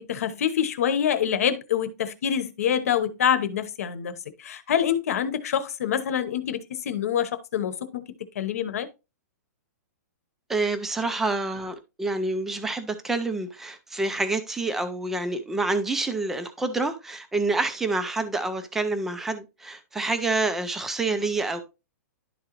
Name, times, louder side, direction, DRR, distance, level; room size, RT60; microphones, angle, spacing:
voice 1, 0.0-8.0 8.3-8.9, left 9 dB, 60° left, 1.0 m, -26 dB
voice 2, 10.5-21.6, right 3 dB, 5° right, 0.4 m, -27 dB
11.5 x 3.8 x 3.0 m
hypercardioid pair, 175°, 9 cm